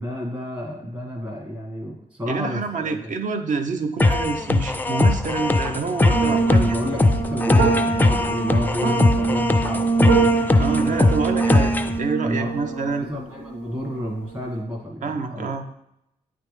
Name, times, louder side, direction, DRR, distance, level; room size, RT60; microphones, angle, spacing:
voice 1, 0.0-3.1 6.5-9.9 10.8-11.4 12.2-15.6, left 1 dB, 30° right, 0 dB, 1.5 m, -31 dB
voice 2, 2.3-6.8 10.6-11.7 12.0-13.1 15.0-15.6, right 4 dB, 55° right, 6 dB, 0.7 m, -27 dB
sound 1, 4.0-12.0, left 2 dB, 10° left, 0.3 m, -20 dB
sound 2, 6.1-14.5, right 4 dB, 80° right, 2.1 m, -24 dB
8.7 x 3.4 x 3.2 m, 0.81 s
cardioid pair, 105°, 15 cm